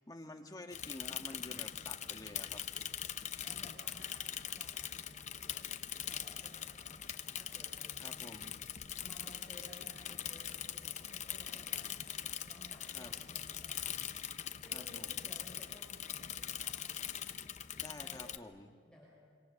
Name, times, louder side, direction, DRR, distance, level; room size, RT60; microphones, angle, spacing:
voice 1, 0.0-2.6 8.0-8.5 12.9-13.2 14.7-15.2 17.8-18.7, left 2 dB, 20° left, 4 dB, 1.5 m, -50 dB
Bicycle / Mechanisms, 0.7-18.4, left 10 dB, 40° left, 0.8 m, -42 dB
voice 2, 3.3-8.1 9.0-13.9 14.1-14.3 14.6-17.0 18.0-18.3 18.8-19.1, equal, 5° left, -6 dB, 5.8 m, -58 dB
26.0 x 26.0 x 7.0 m, 2.1 s
head